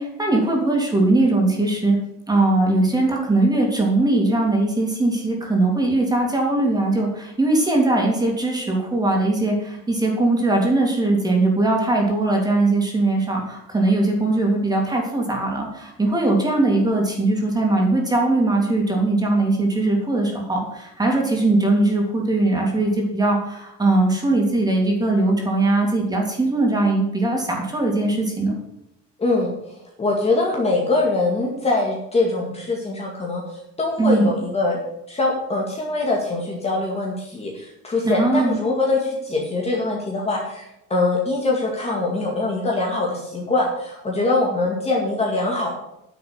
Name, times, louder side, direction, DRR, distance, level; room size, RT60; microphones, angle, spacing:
voice 1, 0.0-2.0 2.3-28.5 34.0-34.3 38.0-38.6, right 2 dB, 10° right, 0 dB, 3.2 m, -20 dB
voice 2, 29.2-29.5 30.0-33.4 33.8-34.8 35.1-45.7, left 2 dB, 20° left, -1 dB, 2.1 m, -23 dB
10.0 x 7.6 x 8.0 m, 0.85 s
cardioid pair, 160°, 33 cm